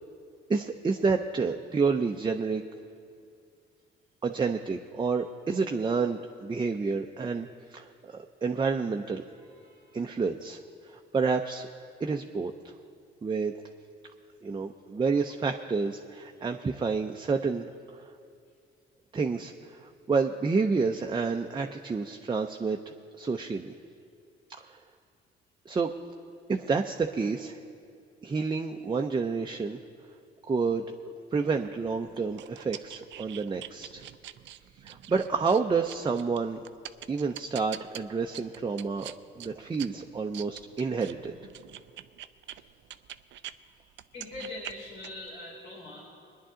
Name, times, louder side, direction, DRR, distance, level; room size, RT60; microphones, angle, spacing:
voice 1, 0.5-2.6 4.2-9.2 9.9-10.6 10.9-11.7 12.0-12.5 13.2-13.5 14.4-18.0 19.1-19.5 19.8-22.8 23.2-23.7 24.6-24.8 25.7-25.9 26.5-27.6 28.2-29.8 30.5-30.8 31.3-34.0 34.8-36.6 37.1-39.1 39.4-41.4, right 4 dB, 25° right, 3 dB, 0.6 m, -29 dB
sound 1, 31.6-43.6 43.9-45.3, right 12 dB, 70° right, 0.4 m, -45 dB
voice 2, 44.1-46.1, left 2 dB, 90° left, -5 dB, 3.6 m, -42 dB
21.0 x 10.5 x 3.8 m, 2.4 s
cardioid pair, 90°, 20 cm